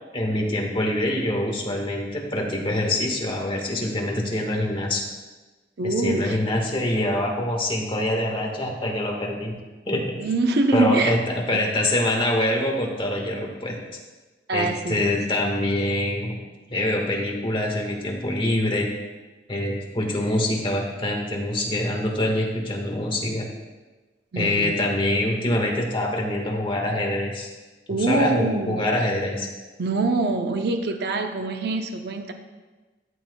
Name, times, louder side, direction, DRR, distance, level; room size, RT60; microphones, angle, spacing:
voice 1, 0.1-5.1 5.8-9.5 9.9-10.2 10.7-13.7 14.5-16.4 16.7-18.9 19.5-23.5 24.3-27.5 28.1-29.5, left 1 dB, 30° left, 0 dB, 1.4 m, -25 dB
voice 2, 5.8-6.4 10.2-11.2 14.5-15.1 24.3-24.7 27.9-28.8 29.8-32.3, right 2 dB, 60° right, 5 dB, 0.6 m, -24 dB
13.0 x 7.2 x 2.2 m, 1.2 s
head